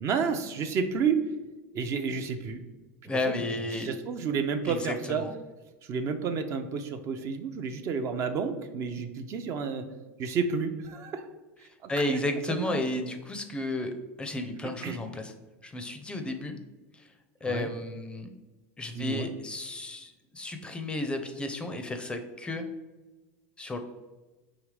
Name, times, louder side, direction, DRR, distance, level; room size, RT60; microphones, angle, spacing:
voice 1, 0.0-1.2 1.7-2.6 3.3-3.5 3.8-5.2 5.9-9.8 10.2-11.2 11.8-12.2 12.5-12.8 14.8-15.0 17.5-17.7 19.0-19.3, right 6 dB, 45° right, 8 dB, 0.5 m, -30 dB
voice 2, 3.0-3.9 4.7-4.8 5.1-5.3 11.9-15.3 15.6-16.5 16.9-17.0 17.4-18.3 18.8-22.7 23.6-23.8, left 2 dB, 15° left, 6 dB, 0.5 m, -33 dB
4.8 x 3.1 x 3.2 m, 1.2 s
supercardioid pair, 120°, 7 cm